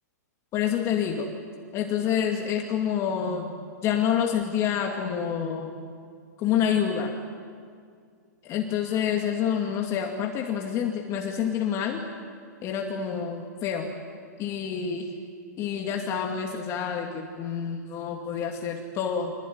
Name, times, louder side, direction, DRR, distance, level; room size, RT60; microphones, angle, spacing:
voice 1, 0.5-1.3 1.7-3.6 3.8-5.8 6.4-7.2 8.4-12.0 12.6-13.9 14.4-15.1 15.6-19.3, left 8 dB, 30° left, 2 dB, 2.2 m, -27 dB
26.0 x 20.5 x 9.5 m, 2.1 s
hypercardioid pair, 130°, 10 cm